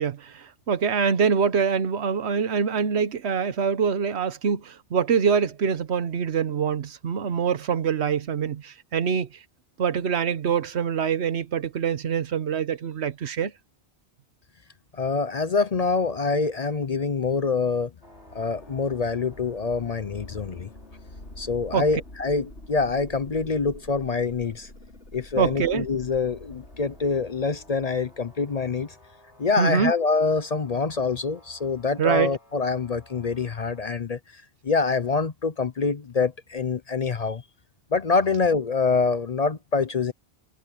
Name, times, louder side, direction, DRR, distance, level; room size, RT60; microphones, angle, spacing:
voice 1, 0.0-9.3 9.8-13.5 21.7-21.8 25.4-25.9 29.6-29.9 32.0-32.3, right 7 dB, 80° right, 1.2 m, -24 dB
voice 2, 14.9-17.9 18.3-20.7 21.4-24.7 25.1-28.9 29.4-37.4 37.9-40.1, left 4 dB, 40° left, 0.7 m, -25 dB
sound 1, 18.0-33.8, left 1 dB, 85° left, 6.8 m, -47 dB
omnidirectional pair, 1.1 m